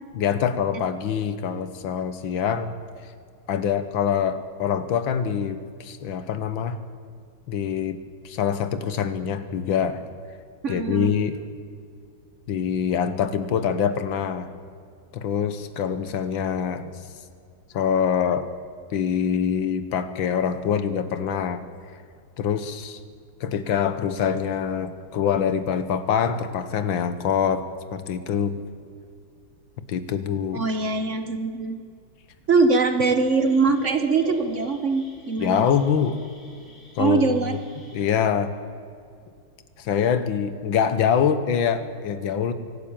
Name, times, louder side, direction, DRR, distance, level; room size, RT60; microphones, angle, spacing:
voice 1, 0.2-2.7 3.5-6.8 7.5-8.0 8.2-10.0 10.7-11.4 12.5-14.5 15.1-16.9 17.7-18.5 18.9-21.6 22.4-23.0 23.4-28.6 29.9-30.6 35.4-36.2 37.0-37.4 37.9-38.5 39.8-42.5, left 7 dB, 85° left, 11 dB, 1.9 m, -24 dB
voice 2, 10.6-11.1 30.5-31.8 32.5-35.7 37.0-37.6, right 4 dB, 45° right, 8 dB, 1.2 m, -22 dB
sound 1, 33.1-38.0, equal, 40° left, 3.7 m, -43 dB
24.0 x 12.0 x 8.8 m, 2.3 s
omnidirectional pair, 2.1 m